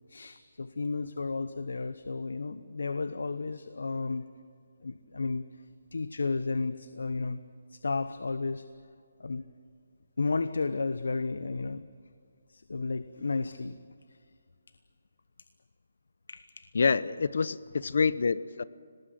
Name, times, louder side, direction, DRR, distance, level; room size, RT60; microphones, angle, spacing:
voice 1, 0.1-4.3 4.8-5.6 5.9-7.4 7.7-8.7 9.2-9.4 10.2-11.8 12.5-13.8 14.1-14.2 16.3-16.7, left 3 dB, 80° left, 13 dB, 1.0 m, -33 dB
voice 2, 16.7-18.6, left 5 dB, 50° left, 18 dB, 0.7 m, -27 dB
27.0 x 19.0 x 7.7 m, 2.2 s
hypercardioid pair, 180°, 0 cm